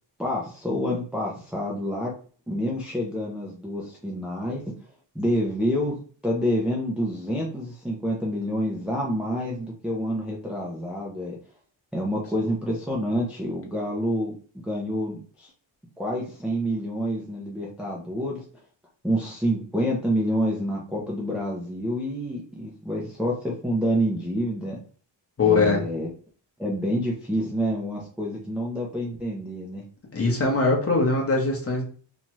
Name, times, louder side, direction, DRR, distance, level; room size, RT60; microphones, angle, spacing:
voice 1, 0.2-2.1 2.5-4.6 5.1-6.0 6.2-11.3 11.9-14.3 14.6-15.5 16.0-18.4 19.0-24.8 25.4-26.1 26.6-29.8, equal, 5° right, -3 dB, 0.4 m, -28 dB
voice 2, 25.4-25.8 30.1-31.8, left 3 dB, 30° left, 0 dB, 0.8 m, -21 dB
2.7 x 2.3 x 2.9 m, 0.42 s
cardioid pair, 135°, 46 cm